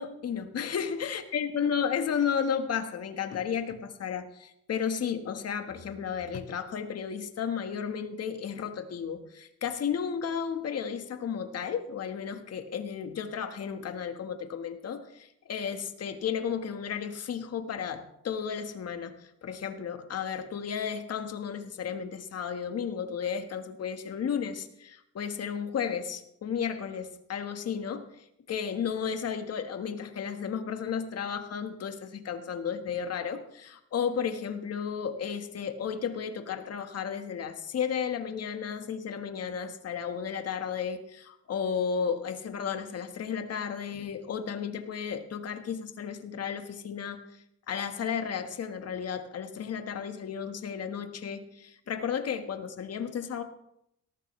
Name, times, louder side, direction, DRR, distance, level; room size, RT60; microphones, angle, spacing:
voice 1, 0.0-53.4, left 7 dB, 55° left, 7 dB, 1.5 m, -33 dB
18.0 x 14.0 x 3.3 m, 0.78 s
cardioid pair, 90°, 30 cm